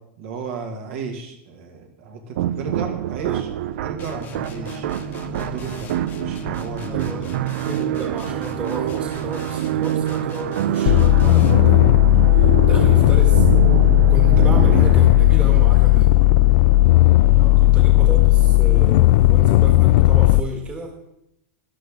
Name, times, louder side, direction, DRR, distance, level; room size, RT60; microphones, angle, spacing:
voice 1, 0.2-3.5 3.8-4.9 5.3-7.4 17.3-17.7, right 4 dB, 60° right, 3 dB, 2.2 m, -34 dB
sound 1, 2.4-16.0, right 12 dB, 80° right, 0.5 m, -26 dB
voice 2, 3.2-3.6 6.9-12.0 12.4-13.5 14.0-16.1 17.6-20.9, right 1 dB, 15° right, 2 dB, 1.6 m, -33 dB
sound 2, 4.0-11.7, left 3 dB, 25° left, 1.0 m, -38 dB
sound 3, 10.9-20.4, left 17 dB, 55° left, 0.3 m, -14 dB
12.5 x 11.5 x 3.8 m, 0.80 s
supercardioid pair, 165°, 7 cm